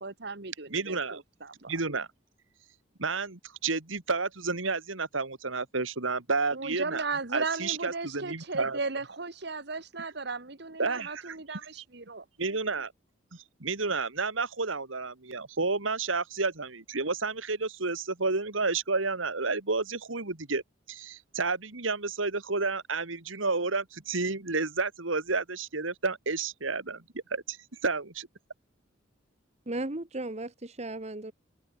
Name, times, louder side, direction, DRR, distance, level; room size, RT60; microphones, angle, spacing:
voice 1, 0.0-1.7 6.5-12.3, right 4 dB, 60° right, 1.7 m, -36 dB
voice 2, 0.7-1.2 1.7-2.1 3.0-7.0 7.3-8.8 10.8-11.6 12.4-12.9 13.6-20.6 20.9-27.0 27.3-27.6 27.8-28.3, right 4 dB, 85° right, 2.3 m, -31 dB
voice 3, 29.7-31.3, right 2 dB, 35° right, 1.4 m, -35 dB
head